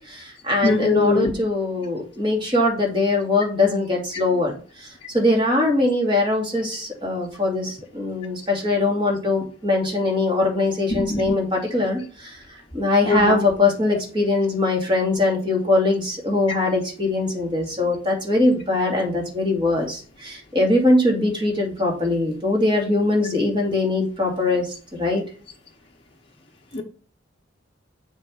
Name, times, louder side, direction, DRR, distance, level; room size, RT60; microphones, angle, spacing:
voice 1, 0.1-4.5 5.1-12.4 12.7-24.7 24.9-25.2, left 2 dB, 25° right, -1 dB, 2.6 m, -21 dB
voice 2, 0.6-1.3 4.1-4.2 10.9-11.3 13.0-13.4 26.7-26.8, left 3 dB, 30° left, -1 dB, 0.9 m, -21 dB
7.3 x 3.7 x 6.4 m, 0.39 s
head